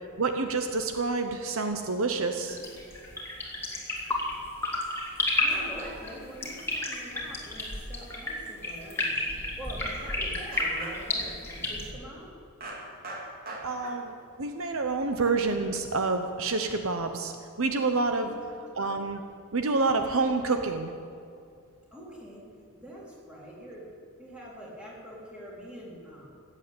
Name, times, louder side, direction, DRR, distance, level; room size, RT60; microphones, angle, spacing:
voice 1, 0.2-2.6 13.6-18.3 18.7-19.2 19.5-20.9, right 3 dB, 65° right, 7 dB, 0.8 m, -28 dB
sound 1, 2.5-11.9, left 2 dB, 10° left, 2.3 m, -32 dB
sound 2, 3.6-3.7 4.9-5.0 5.5-6.2 6.6-6.7 7.0-7.1 7.5-7.7 8.4-8.6 8.9-9.0 9.5-9.6 9.8-9.9 10.5-11.4 12.6-14.2 15.1-15.2 16.4-16.6, right 2 dB, 40° right, 2.3 m, -42 dB
voice 2, 5.4-9.2 9.5-12.4 18.1-18.6 21.9-22.5 22.7-23.9 24.2-26.3, equal, 5° right, -5 dB, 3.6 m, -44 dB
15.5 x 8.4 x 8.6 m, 2.4 s
head